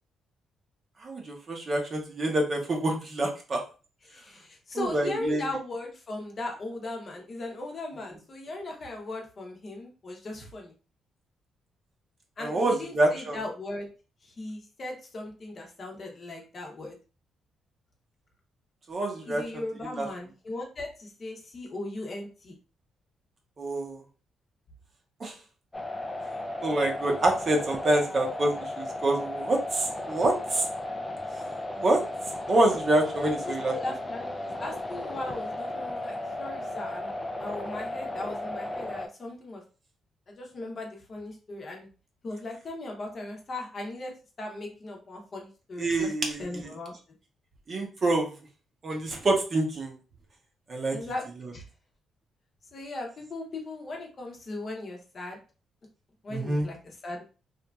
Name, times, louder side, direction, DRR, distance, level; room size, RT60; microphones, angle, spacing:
voice 1, 1.0-3.6 4.7-5.4 12.4-13.4 18.9-19.4 19.9-20.1 23.6-24.0 25.2-25.3 26.6-30.7 31.8-32.0 32.5-33.7 45.8-46.6 47.7-48.3 48.8-49.9 50.7-51.0 56.3-56.7, right 2 dB, 40° right, 1 dB, 0.7 m, -26 dB
voice 2, 4.1-10.7 12.4-13.9 14.2-17.0 19.3-22.5 33.1-37.1 37.4-39.6 40.3-41.9 42.2-44.1 44.4-46.1 46.4-46.9 50.9-51.3 51.5-51.6 52.7-55.4 56.2-57.2, left 2 dB, 40° left, 1 dB, 0.7 m, -38 dB
sound 1, 25.7-39.1, left 1 dB, 15° left, 0.3 m, -35 dB
2.9 x 2.4 x 2.2 m, 0.35 s
cardioid pair, 120°, 0 cm